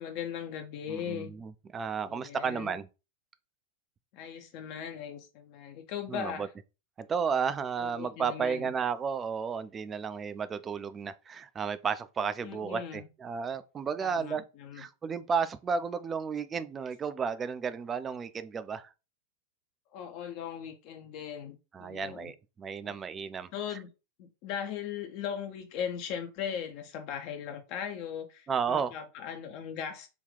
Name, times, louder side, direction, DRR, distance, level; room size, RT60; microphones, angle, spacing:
voice 1, 0.0-1.3 2.1-2.7 4.1-6.5 7.8-8.7 12.4-13.1 14.0-14.8 19.9-22.3 22.8-22.9 23.5-23.9 24.2-30.1, left 8 dB, 45° left, 0.5 m, -38 dB
voice 2, 0.9-2.9 6.1-6.5 7.0-14.4 14.8-18.9 21.7-23.5 28.5-28.9, right 6 dB, 20° right, 0.3 m, -33 dB
3.5 x 2.2 x 3.8 m
figure-of-eight pair, 90°, 0 cm